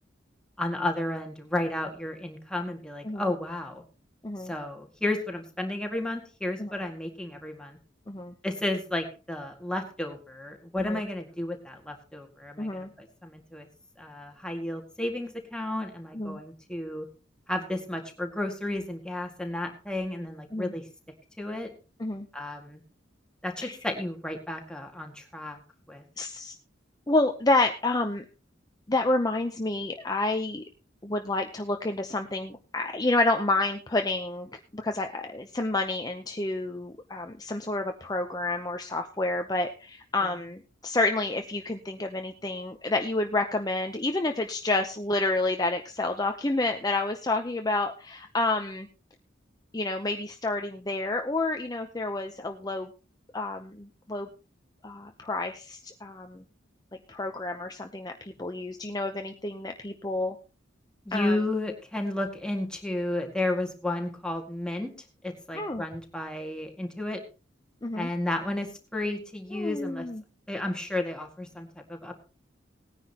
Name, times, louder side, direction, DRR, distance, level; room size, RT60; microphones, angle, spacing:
voice 1, 0.6-3.8 4.4-7.8 8.4-13.7 14.0-17.1 17.5-20.8 21.4-21.7 22.3-22.8 23.4-25.6 25.9-26.0 61.1-64.9 65.2-67.2 67.9-68.7 68.9-70.1 70.5-72.1, left 1 dB, 5° left, 2 dB, 1.9 m, -32 dB
voice 2, 4.2-4.5 6.6-6.7 8.1-8.3 10.8-11.0 12.6-12.9 16.1-16.4 20.5-20.7 22.0-22.3 23.6-23.8 26.2-26.5 27.1-28.2 28.9-30.6 31.0-48.9 49.7-52.9 53.3-54.3 54.8-56.4 57.1-60.4 61.1-61.4 65.5-65.8 67.8-68.1 69.5-70.2, left 2 dB, 20° left, 5 dB, 0.7 m, -29 dB
19.0 x 9.9 x 2.9 m, 0.33 s
head